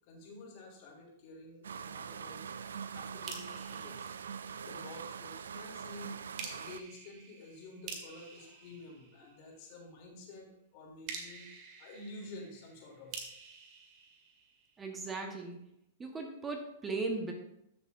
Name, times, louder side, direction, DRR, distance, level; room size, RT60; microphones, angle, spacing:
voice 1, 0.1-2.4 2.9-4.1 4.5-6.2 6.5-10.5 10.7-11.5 11.8-13.3, left 2 dB, 50° left, -1 dB, 3.2 m, -50 dB
sound 1, 1.6-6.8, right 7 dB, 85° right, 0.4 m, -43 dB
sound 2, 3.3-5.0 6.4-9.7 11.1-15.0, right 5 dB, 40° right, 1.9 m, -48 dB
voice 2, 14.8-15.6 16.0-17.3, right 3 dB, 15° right, 3 dB, 1.3 m, -37 dB
13.5 x 6.7 x 2.6 m, 0.79 s
hypercardioid pair, 120°, 0 cm